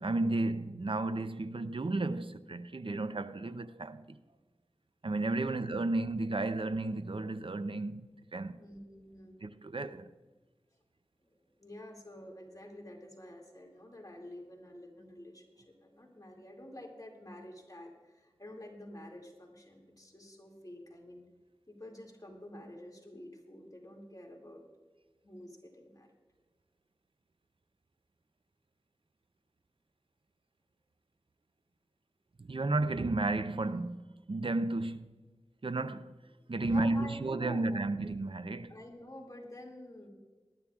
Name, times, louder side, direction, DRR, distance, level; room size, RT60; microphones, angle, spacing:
voice 1, 0.0-4.2 5.0-8.0 8.3-8.6 9.4-10.1 32.4-35.1 35.6-36.1 36.5-38.7, right 2 dB, 60° right, 0.6 m, -33 dB
voice 2, 5.2-5.6 8.6-9.4 11.2-21.3 21.7-24.6 25.2-26.1 36.6-37.9 38.7-40.1, left 1 dB, 35° left, 2.4 m, -49 dB
20.0 x 12.5 x 2.4 m
wide cardioid pair, 55°, 10 cm